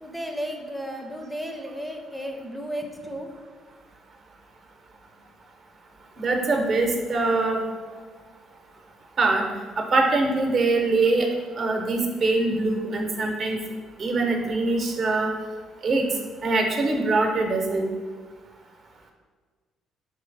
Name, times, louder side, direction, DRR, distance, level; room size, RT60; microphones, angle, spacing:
voice 1, 0.0-3.3, equal, ahead, 3 dB, 0.5 m, -34 dB
voice 2, 6.2-7.6 9.2-9.4 9.8-11.3 11.6-13.6 14.0-15.3 15.8-16.0 16.4-17.9, right 3 dB, 50° right, 2 dB, 0.8 m, -23 dB
4.2 x 3.2 x 3.9 m, 1.5 s
supercardioid pair, 75°, 0 cm